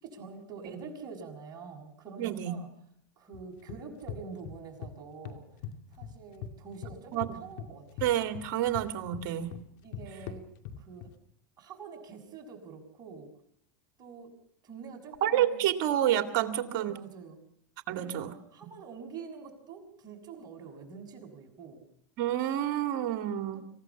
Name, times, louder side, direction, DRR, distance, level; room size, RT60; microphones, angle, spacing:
voice 1, 0.0-2.7 3.2-5.5 5.9-8.1 9.8-11.1 11.6-13.3 14.0-14.4 14.6-15.7 16.7-17.4 17.9-21.8 23.5-23.6, right 5 dB, 40° right, 2 dB, 6.5 m, -46 dB
voice 2, 2.2-2.5 7.1-7.4 8.0-9.5 15.2-17.0 17.9-18.3 22.2-23.6, right 11 dB, 65° right, 8 dB, 2.3 m, -29 dB
sound 1, 3.3-4.9 5.2-6.5 6.8-11.1, left 8 dB, 65° left, 2.4 m, -42 dB
27.0 x 16.0 x 7.2 m, 0.72 s
hypercardioid pair, 105°, 10 cm